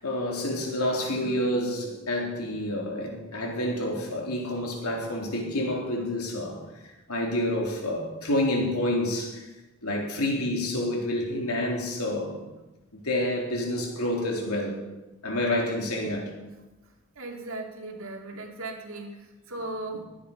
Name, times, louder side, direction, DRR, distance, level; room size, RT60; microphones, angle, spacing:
voice 1, 0.0-9.5 9.8-12.4 12.9-14.8 15.2-16.3, left 1 dB, 90° left, 0 dB, 3.8 m, -28 dB
voice 2, 1.0-1.6 16.0-16.6 17.2-19.1 19.5-20.0, right 2 dB, 65° right, 2 dB, 2.5 m, -38 dB
20.5 x 9.9 x 5.5 m, 1.1 s
head